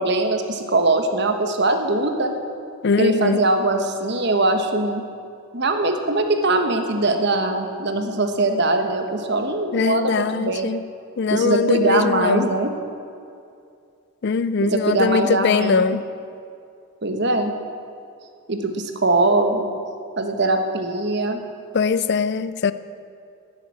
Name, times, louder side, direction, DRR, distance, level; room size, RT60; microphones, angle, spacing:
voice 1, 0.0-2.3 3.0-5.0 5.5-10.7 11.3-12.7 14.6-15.9 17.0-17.5 18.5-19.7 20.2-21.4, right 2 dB, 55° right, 6 dB, 1.2 m, -21 dB
voice 2, 2.8-3.4 9.7-10.9 11.2-12.5 14.2-16.0 21.7-22.7, left 5 dB, 50° left, 15 dB, 0.4 m, -21 dB
12.5 x 7.9 x 9.7 m, 2.4 s
head